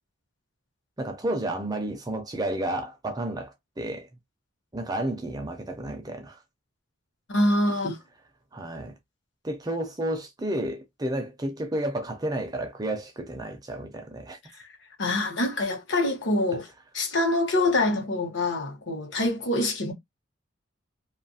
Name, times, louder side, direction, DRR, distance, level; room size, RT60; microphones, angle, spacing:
voice 1, 1.0-4.1 4.7-6.4 8.5-8.9 9.4-14.4, right 1 dB, 20° right, 0.4 m, -31 dB
voice 2, 7.3-8.0 15.0-16.7 16.9-19.9, left 2 dB, 65° left, 1.0 m, -25 dB
2.7 x 2.4 x 2.7 m
head